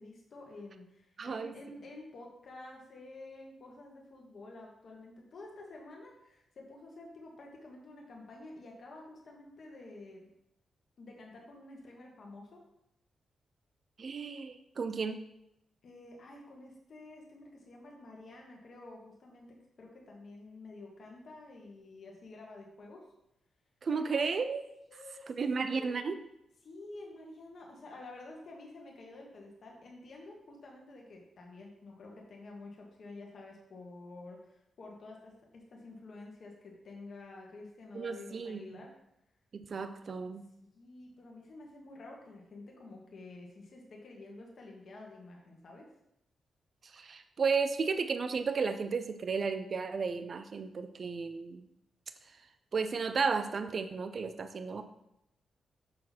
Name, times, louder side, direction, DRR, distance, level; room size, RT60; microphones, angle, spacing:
voice 1, 0.0-10.2 11.0-12.6 15.8-19.5 19.8-23.0 23.9-24.1 24.9-25.3 25.6-25.9 26.6-38.9 40.6-45.9, left 2 dB, 45° left, -1 dB, 1.3 m, -50 dB
voice 2, 1.2-1.5 14.0-15.2 23.8-24.6 25.3-26.1 37.9-38.8 39.5-40.5 46.9-51.7 52.7-54.8, right 5 dB, 40° right, 9 dB, 0.4 m, -33 dB
6.5 x 5.8 x 4.1 m, 0.83 s
wide cardioid pair, 175°, 0 cm